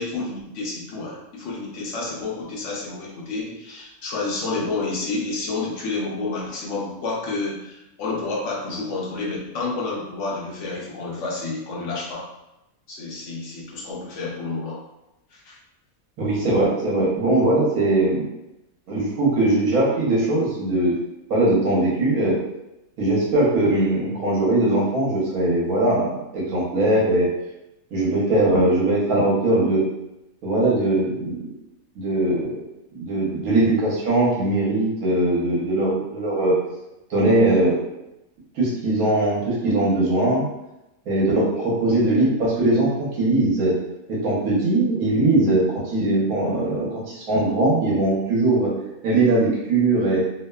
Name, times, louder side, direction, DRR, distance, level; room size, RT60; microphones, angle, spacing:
voice 1, 0.0-12.3 12.9-14.8 15.3-15.6 41.4-42.0, left 3 dB, 65° left, -3 dB, 0.8 m, -30 dB
voice 2, 16.2-18.3 18.9-20.9 21.3-22.4 23.0-27.3 27.9-29.8 30.4-31.5 32.0-32.6 32.9-36.6 37.1-37.8 38.6-40.5 41.1-43.7 44.1-48.7 49.0-50.3, right 2 dB, 80° right, -5 dB, 1.3 m, -20 dB
2.8 x 2.1 x 2.2 m, 0.92 s
omnidirectional pair, 1.5 m